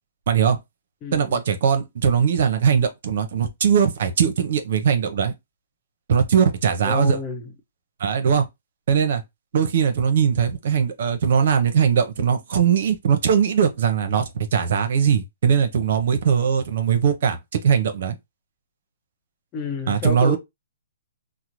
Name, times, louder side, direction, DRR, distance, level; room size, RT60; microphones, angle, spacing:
voice 1, 0.3-0.6 1.1-5.3 6.1-7.2 8.0-8.4 8.9-9.2 9.5-18.2 19.9-20.4, right 7 dB, 60° right, 0.7 m, -20 dB
voice 2, 1.0-1.4 6.8-7.5 19.5-20.4, left 4 dB, 25° left, 0.8 m, -29 dB
3.7 x 2.1 x 3.0 m
hypercardioid pair, 140°, 0 cm